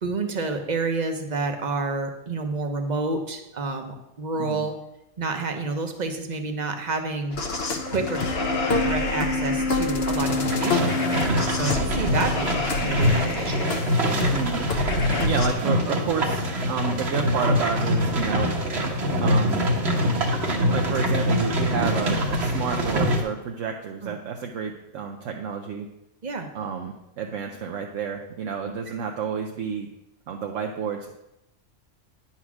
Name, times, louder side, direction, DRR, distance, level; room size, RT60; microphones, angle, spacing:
voice 1, 0.0-4.7 5.2-8.2 8.8-11.0 11.5-13.7 24.0-24.1 26.2-26.5, right 3 dB, 40° right, 5 dB, 0.9 m, -29 dB
sound 1, 7.3-15.5, left 3 dB, 60° left, 1.1 m, -26 dB
sound 2, 10.2-23.2, equal, 60° right, 1.4 m, -24 dB
voice 2, 14.3-14.7 15.2-18.5 19.2-19.6 20.7-25.9 26.5-29.9 30.3-31.1, right 6 dB, 80° right, 2 dB, 1.1 m, -30 dB
9.6 x 4.3 x 6.0 m, 0.89 s
omnidirectional pair, 1.3 m